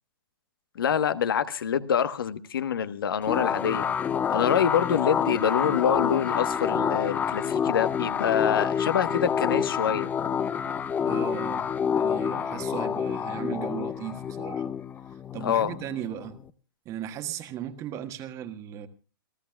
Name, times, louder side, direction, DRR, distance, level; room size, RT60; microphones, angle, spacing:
voice 1, 0.7-3.9 4.3-10.1 15.4-15.7, left 8 dB, 75° left, 1.2 m, -26 dB
sound 1, 3.3-16.5, left 7 dB, 15° left, 0.6 m, -28 dB
voice 2, 11.0-11.6 11.9-14.7 15.3-16.4 16.8-18.9, right 10 dB, 25° right, 1.4 m, -36 dB
28.0 x 14.0 x 2.3 m
hypercardioid pair, 140°, 12 cm